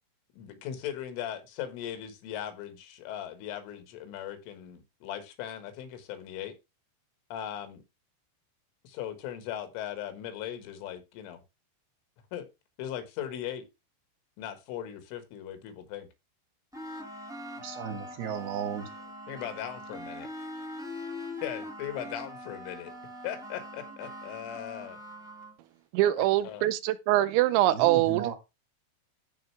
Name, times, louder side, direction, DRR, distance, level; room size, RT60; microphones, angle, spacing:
voice 1, 0.4-6.5 7.3-7.8 8.8-11.4 12.3-12.5 12.8-13.7 14.4-16.1 19.3-20.3 21.4-22.9 23.2-25.0 26.2-26.6, left 10 dB, 80° left, 4.2 m, -38 dB
sound 1, 16.7-25.6, left 1 dB, 5° right, 0.7 m, -42 dB
voice 2, 17.6-18.9 27.7-28.4, right 8 dB, 65° right, 3.1 m, -35 dB
voice 3, 25.9-28.3, right 14 dB, 80° right, 2.9 m, -24 dB
14.5 x 5.4 x 3.4 m
omnidirectional pair, 5.6 m